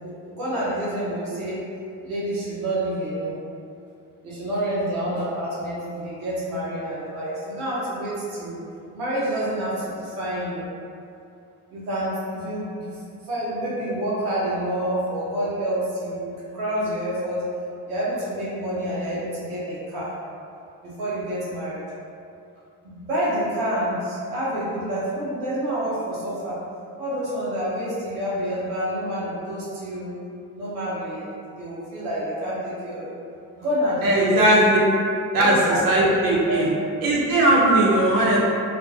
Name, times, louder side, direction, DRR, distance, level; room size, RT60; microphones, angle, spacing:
voice 1, 0.0-1.6 2.0-3.4 4.2-8.6 8.9-10.6 11.7-13.0 13.3-17.4 17.9-20.1 20.8-21.8 22.8-26.6 27.0-30.1 30.5-33.2 33.6-34.4 35.3-36.7, right 1 dB, 90° right, -9 dB, 0.6 m, -28 dB
voice 2, 34.0-34.8 35.3-36.7 37.0-38.4, right 1 dB, 50° right, -5 dB, 0.7 m, -18 dB
2.3 x 2.2 x 2.4 m, 2.5 s
hypercardioid pair, 45°, 45 cm